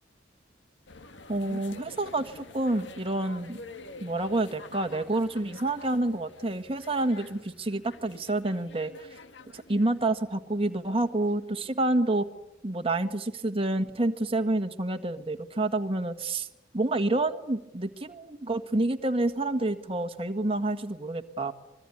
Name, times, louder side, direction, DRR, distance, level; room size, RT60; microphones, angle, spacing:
sound 1, 0.9-11.3 11.6-11.7, left 3 dB, 70° left, 1.9 m, -48 dB
voice 1, 1.3-3.6 4.0-9.1 9.5-12.2 12.6-16.5 16.7-21.5, right 2 dB, 30° right, 7 dB, 1.6 m, -28 dB
26.0 x 22.0 x 9.9 m, 0.90 s
head